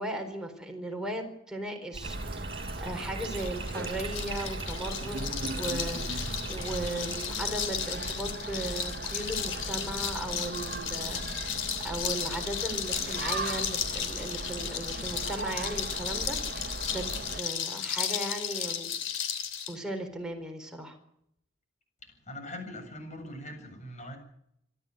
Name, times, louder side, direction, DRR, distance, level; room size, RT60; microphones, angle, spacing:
voice 1, 0.0-17.0 17.3-18.9 19.7-21.0, right 1 dB, 5° right, 2 dB, 4.3 m, -37 dB
Bathtub (filling or washing), 1.9-7.2, right 2 dB, 30° right, 4.7 m, -39 dB
sound 1, 2.0-17.4, right 2 dB, 55° right, 1.4 m, -38 dB
sound 2, 3.3-19.7, left 8 dB, 80° left, 3.3 m, -34 dB
voice 2, 22.3-24.2, left 1 dB, 40° left, 5 dB, 7.7 m, -41 dB
27.5 x 12.5 x 9.2 m, 0.74 s
head